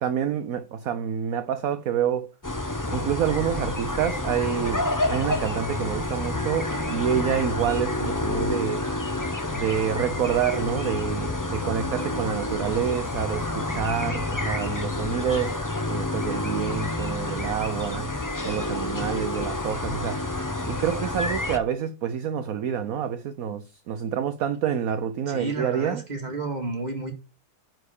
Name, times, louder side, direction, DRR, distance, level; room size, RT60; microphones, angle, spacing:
voice 1, 0.0-2.3 2.9-8.8 9.5-15.6 15.9-18.1 18.4-20.2 20.7-26.0, right 9 dB, 60° right, 1.1 m, -28 dB
sound 1, 2.4-21.6, left 2 dB, 15° left, 0.8 m, -29 dB
voice 2, 25.3-27.1, right 3 dB, 25° right, 2.3 m, -31 dB
9.6 x 4.7 x 6.6 m
omnidirectional pair, 2.0 m